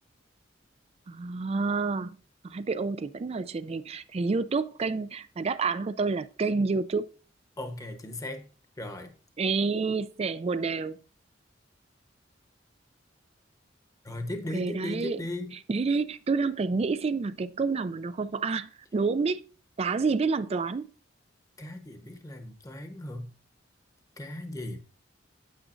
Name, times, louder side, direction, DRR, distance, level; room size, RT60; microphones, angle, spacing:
voice 1, 1.1-2.2 2.4-7.1 9.4-11.0 14.5-15.2 15.7-19.4 19.8-20.9, right 4 dB, 35° right, 0.3 m, -28 dB
voice 2, 7.6-8.5 8.8-9.1 14.0-15.6 21.6-23.3 24.2-24.8, left 1 dB, 20° left, 1.0 m, -37 dB
8.9 x 8.9 x 2.6 m
head